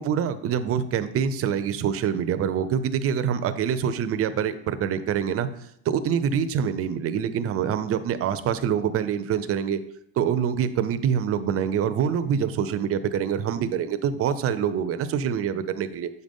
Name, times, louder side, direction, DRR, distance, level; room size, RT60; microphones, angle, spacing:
voice 1, 0.0-5.5 5.9-9.8 10.2-16.1, right 8 dB, 40° right, 11 dB, 0.5 m, -25 dB
8.1 x 5.2 x 3.5 m, 0.73 s
cardioid pair, 135°, 36 cm